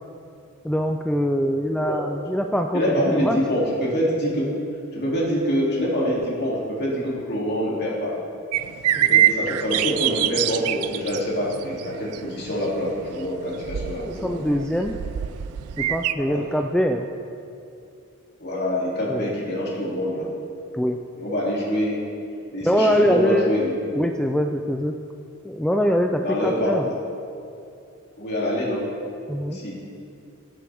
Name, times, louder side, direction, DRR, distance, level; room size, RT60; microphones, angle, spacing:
voice 1, 0.6-3.4 9.0-9.2 14.0-15.0 15.8-17.1 19.1-19.3 20.7-21.0 22.6-23.5 24.0-24.9 25.4-26.9 29.3-29.6, equal, 5° left, 3 dB, 0.3 m, -23 dB
voice 2, 2.7-4.5 4.9-8.2 8.9-14.4 16.2-16.4 18.4-20.3 21.2-22.0 22.5-23.7 26.2-27.0 28.2-28.9 29.5-29.7, equal, 50° left, -5 dB, 2.9 m, -25 dB
sound 1, 8.5-16.1, right 11 dB, 85° right, 0.4 m, -25 dB
18.0 x 7.7 x 3.5 m, 2.6 s
head